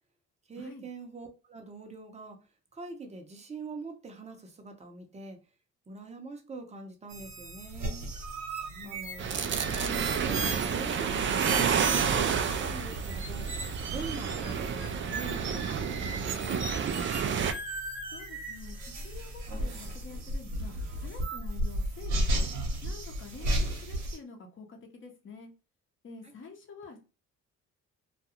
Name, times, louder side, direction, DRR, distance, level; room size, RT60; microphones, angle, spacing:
voice 1, 0.5-2.4 2.7-5.4 5.9-8.1 8.8-9.4 9.7-13.5 13.9-17.1 26.2-26.3, right 3 dB, 20° right, 0.8 m, -43 dB
sound 1, 7.1-24.2, right 1 dB, 65° right, 1.0 m, -35 dB
voice 2, 8.6-9.1 18.1-22.5 22.8-25.5 26.0-27.0, left 4 dB, 40° left, 0.9 m, -48 dB
sound 2, 9.2-17.5, right 6 dB, 40° right, 0.4 m, -30 dB
2.4 x 2.2 x 2.8 m
cardioid pair, 90°, 30 cm